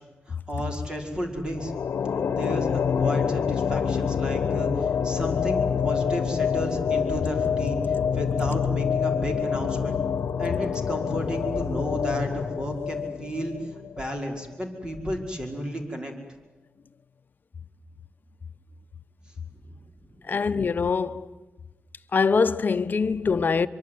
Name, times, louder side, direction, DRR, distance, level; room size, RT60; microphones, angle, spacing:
voice 1, 0.3-1.7 2.3-10.0 10.4-13.5 14.0-16.1 19.6-19.7 20.1-20.2, equal, 20° right, 5.4 m, -32 dB
sound 1, 1.5-14.1, left 7 dB, 80° left, 1.2 m, -26 dB
voice 2, 20.3-21.3 22.1-23.7, left 5 dB, 50° left, 1.1 m, -23 dB
24.5 x 24.5 x 9.5 m
wide cardioid pair, 100°, 4 cm